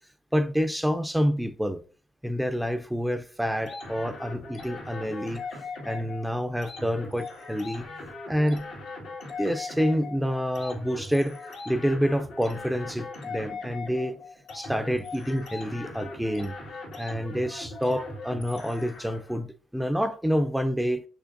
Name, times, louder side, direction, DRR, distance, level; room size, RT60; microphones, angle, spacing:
voice 1, 0.3-1.8 2.2-5.4 5.8-7.9 8.3-8.7 9.4-11.4 11.7-14.2 14.5-16.6 17.0-21.1, equal, 5° right, 0.4 m, -28 dB
sound 1, 3.7-19.4, left 3 dB, 85° left, 2.1 m, -40 dB
6.2 x 3.2 x 2.6 m
cardioid pair, 90°, 0 cm